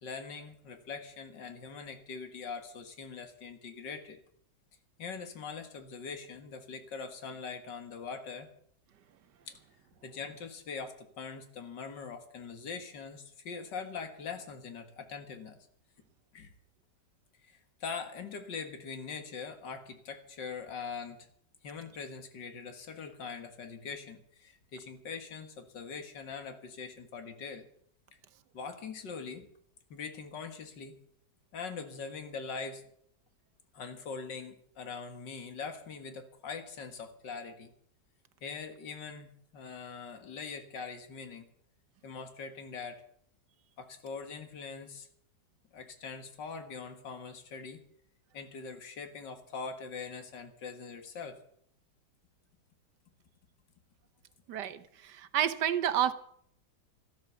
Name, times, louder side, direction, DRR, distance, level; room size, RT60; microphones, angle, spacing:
voice 1, 0.0-4.2 5.0-8.5 9.5-9.6 10.0-15.6 16.3-16.5 17.4-21.3 21.6-27.7 28.1-28.2 28.5-29.5 29.9-31.0 31.5-32.8 33.7-37.7 38.4-41.5 42.0-43.0 43.8-45.1 45.7-47.8 48.3-51.4, left 5 dB, 80° left, 7 dB, 2.4 m, -42 dB
voice 2, 54.5-56.1, right 10 dB, 75° right, 14 dB, 1.5 m, -30 dB
13.5 x 12.5 x 6.9 m, 0.67 s
omnidirectional pair, 1.9 m